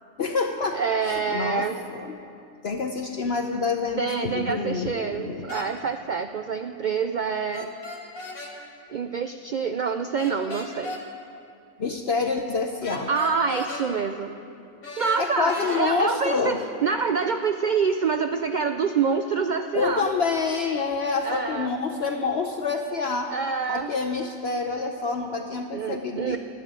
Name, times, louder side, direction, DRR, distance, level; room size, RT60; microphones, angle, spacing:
voice 1, 0.2-1.7 1.9-2.2 2.6-5.5 11.8-13.1 15.2-16.6 19.7-23.3 23.7-26.4, left 4 dB, 55° left, 4 dB, 0.9 m, -27 dB
voice 2, 0.7-1.8 4.0-7.7 8.9-11.0 13.1-14.3 15.0-16.6 16.8-20.0 21.2-21.7 23.3-23.9 25.7-26.4, right 5 dB, 80° right, 7 dB, 0.4 m, -26 dB
sound 1, 5.5-5.7 7.5-8.5 10.2-11.0 12.8-13.9 14.8-15.8, left 2 dB, 85° left, 2.6 m, -36 dB
12.5 x 8.6 x 9.9 m, 2.5 s
omnidirectional pair, 1.4 m